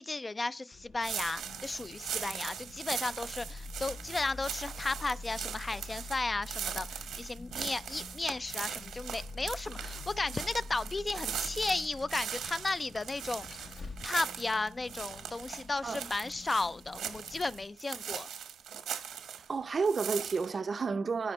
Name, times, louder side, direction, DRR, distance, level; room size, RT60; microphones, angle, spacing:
voice 1, 0.0-13.7 14.0-18.3, left 3 dB, 25° left, 0.4 m, -34 dB
Vehicle, 0.7-17.6, left 3 dB, 55° left, 0.9 m, -47 dB
sound 1, 1.0-19.5 19.8-20.5, right 8 dB, 85° right, 1.1 m, -40 dB
voice 2, 19.5-21.3, right 4 dB, 45° right, 0.5 m, -31 dB
13.5 x 5.1 x 3.1 m
cardioid pair, 70°, 0 cm